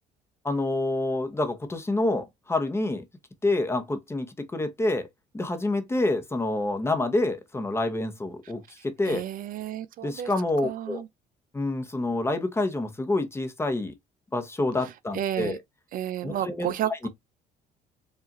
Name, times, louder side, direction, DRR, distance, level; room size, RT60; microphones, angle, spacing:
voice 1, 0.4-3.0 3.4-5.1 5.3-9.2 10.0-11.0 11.5-13.9 14.3-15.6 16.2-16.7 17.0-17.1, left 2 dB, 15° left, 0.8 m, -27 dB
voice 2, 9.1-10.3 10.6-11.1 15.1-15.6 15.9-17.1, right 11 dB, 55° right, 0.4 m, -31 dB
4.7 x 2.4 x 2.9 m
cardioid pair, 110°, 17 cm